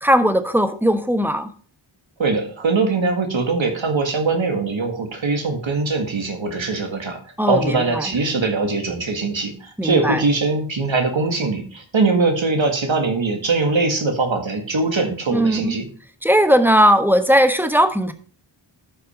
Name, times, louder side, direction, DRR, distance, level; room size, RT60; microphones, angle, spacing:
voice 1, 0.0-1.5 7.4-8.1 9.8-10.2 15.3-15.8 16.2-18.1, equal, 5° right, 9 dB, 1.2 m, -18 dB
voice 2, 2.2-7.2 7.5-15.9, right 3 dB, 85° right, 4 dB, 2.0 m, -21 dB
12.5 x 5.4 x 4.3 m, 0.43 s
wide cardioid pair, 45°, 45 cm